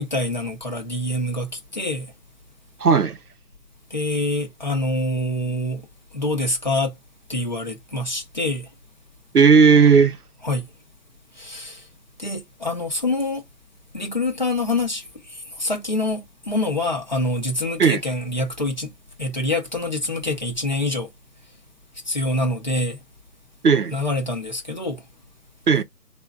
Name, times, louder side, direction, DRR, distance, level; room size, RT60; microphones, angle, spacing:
voice 1, 0.0-2.1 3.9-5.9 6.1-6.9 7.3-8.7 10.4-10.7 11.4-11.8 12.2-13.4 13.9-15.0 15.3-18.9 19.2-21.1 22.1-23.0 23.9-25.0, left 2 dB, 30° left, 0.7 m, -25 dB
voice 2, 2.8-3.2 9.3-10.2 17.8-18.0 23.6-24.0 25.7-25.8, right 5 dB, 65° right, 0.9 m, -15 dB
3.7 x 2.5 x 3.2 m
figure-of-eight pair, 160°, 49 cm